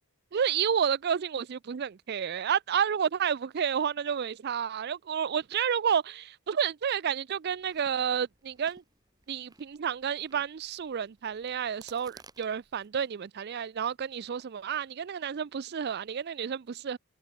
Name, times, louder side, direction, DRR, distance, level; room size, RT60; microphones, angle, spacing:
voice 1, 0.3-8.8 9.3-17.0, right 7 dB, 45° right, 0.4 m, -30 dB
Chewing mastication, 7.4-12.9, right 3 dB, 15° right, 5.8 m, -58 dB
head